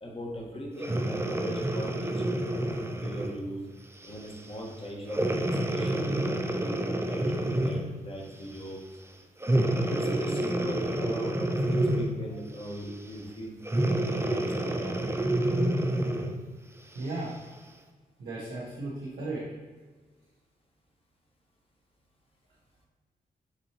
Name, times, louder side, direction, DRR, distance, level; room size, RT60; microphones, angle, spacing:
voice 1, 0.0-2.2 2.6-3.6 4.0-8.8 9.9-15.0, equal, 35° left, -1 dB, 1.2 m, -40 dB
Breathing, 0.8-3.4 4.0-4.3 5.1-8.0 9.4-12.3 13.6-16.4 17.0-17.1, right 1 dB, 15° right, 0.5 m, -28 dB
voice 2, 16.9-17.3 18.2-19.4, right 2 dB, 80° right, -7 dB, 0.9 m, -35 dB
6.0 x 2.8 x 2.9 m, 1.4 s
supercardioid pair, 40°, 17 cm